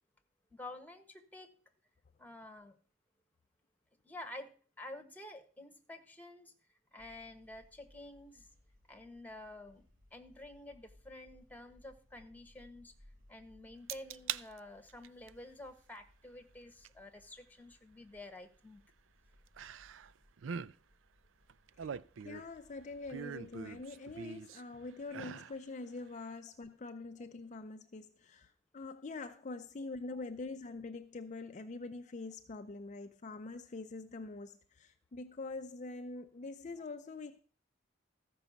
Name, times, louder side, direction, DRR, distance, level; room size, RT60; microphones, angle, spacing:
voice 1, 0.5-1.5 2.2-2.8 4.0-4.5 4.8-6.5 6.9-8.5 8.9-9.8 10.1-12.9 13.3-18.8 30.1-30.2, left 1 dB, 10° left, 1.4 m, -50 dB
sound 1, 7.0-23.9, left 1 dB, 75° right, 4.4 m, -66 dB
sound 2, 13.9-14.4 14.9-15.3 16.8-16.9 19.6-20.1 20.4-20.7 21.5-22.6 23.1-24.6 25.1-25.6 26.0-26.1, right 8 dB, 90° right, 0.4 m, -42 dB
voice 2, 22.2-37.4, left 3 dB, 40° left, 0.5 m, -45 dB
14.0 x 5.4 x 7.1 m
head